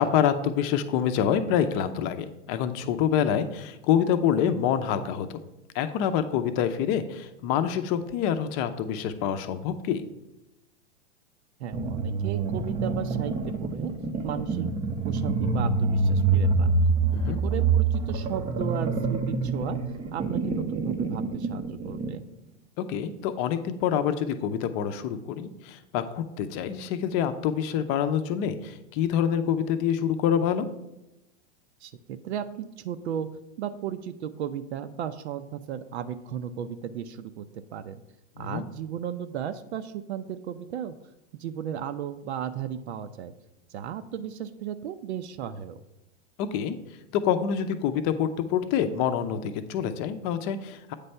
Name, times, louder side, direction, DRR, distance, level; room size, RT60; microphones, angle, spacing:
voice 1, 0.0-5.4 5.7-10.0 17.1-17.4 22.8-30.7 38.4-38.6 46.5-46.8 47.1-50.9, left 9 dB, 35° left, 10 dB, 0.6 m, -26 dB
voice 2, 11.6-13.9 14.2-14.7 15.0-16.7 17.2-19.8 20.1-22.2 31.8-33.3 33.6-37.5 37.7-38.0 38.4-40.9 41.3-43.3 43.7-45.8, right 9 dB, 70° right, 10 dB, 0.6 m, -35 dB
sound 1, 11.7-22.2, right 4 dB, 15° right, 0.6 m, -26 dB
8.3 x 3.3 x 5.5 m, 0.91 s
hypercardioid pair, 120°, 35 cm